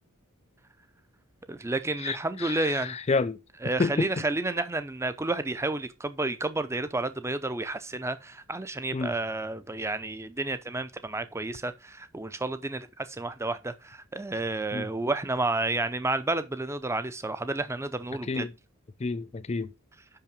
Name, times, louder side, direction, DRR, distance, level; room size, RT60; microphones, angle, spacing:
voice 1, 1.5-3.0 3.6-18.5, right 2 dB, 15° right, 0.6 m, -31 dB
voice 2, 2.0-3.4 3.8-4.1 8.9-9.1 14.7-14.9 18.3-18.5 19.0-19.7, left 4 dB, 30° left, 0.4 m, -29 dB
5.7 x 5.7 x 5.2 m
head